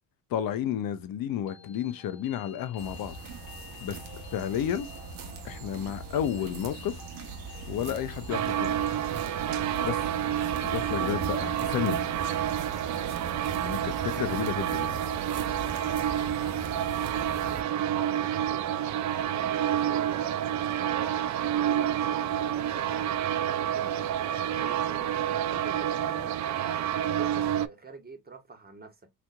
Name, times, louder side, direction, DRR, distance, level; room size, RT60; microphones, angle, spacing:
voice 1, 0.3-3.2 3.8-4.0 4.3-4.9 5.4-7.0 7.7-8.8 9.8-10.0 10.6-12.0 13.6-15.0, left 10 dB, 55° left, 0.8 m, -31 dB
sound 1, 1.2-17.2, left 7 dB, 80° left, 1.2 m, -52 dB
sound 2, 2.8-17.6, right 4 dB, 60° right, 1.1 m, -41 dB
sound 3, 8.3-27.7, right 10 dB, 45° right, 0.5 m, -29 dB
voice 2, 17.0-21.1 21.5-24.2 24.6-29.1, right 3 dB, 20° right, 1.2 m, -47 dB
4.2 x 2.9 x 2.4 m
hypercardioid pair, 65°, 42 cm